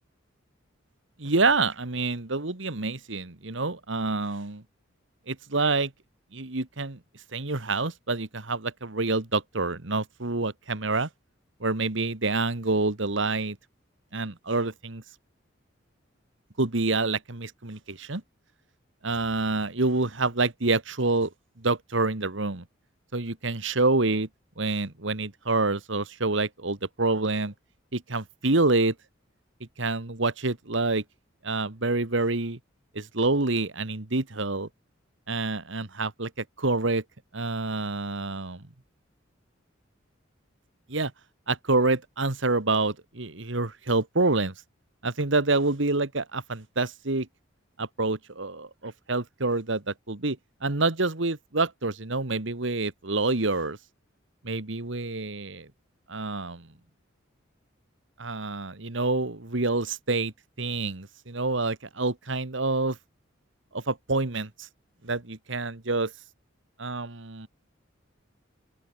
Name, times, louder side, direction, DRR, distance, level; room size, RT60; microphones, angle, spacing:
voice 1, 1.2-4.6 5.3-5.9 6.3-7.0 7.3-11.1 11.6-13.6 14.1-15.0 16.6-18.2 19.0-21.3 21.6-22.6 23.1-24.3 24.6-27.5 27.9-28.9 29.8-31.0 31.4-32.6 33.0-34.7 35.3-37.0 37.3-38.6 40.9-41.1 41.5-44.5 45.0-47.3 47.8-50.4 50.6-53.8 54.4-55.7 56.1-56.6 58.2-60.3 60.6-63.0 63.7-64.7 65.0-66.1 66.8-67.5, right 3 dB, 70° right, 1.8 m, -27 dB
open air
head